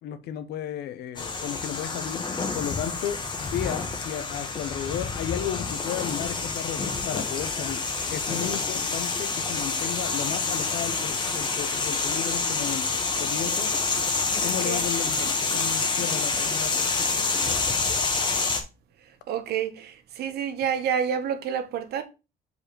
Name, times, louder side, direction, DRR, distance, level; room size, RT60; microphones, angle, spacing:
voice 1, 0.0-7.8 8.1-13.7 14.4-17.8, left 10 dB, 75° left, 1.1 m, -34 dB
sound 1, 1.2-18.6, left 4 dB, 25° left, 1.4 m, -27 dB
voice 2, 14.1-14.8 19.3-22.0, right 8 dB, 75° right, 1.3 m, -29 dB
4.9 x 4.8 x 5.1 m
cardioid pair, 110°, 17 cm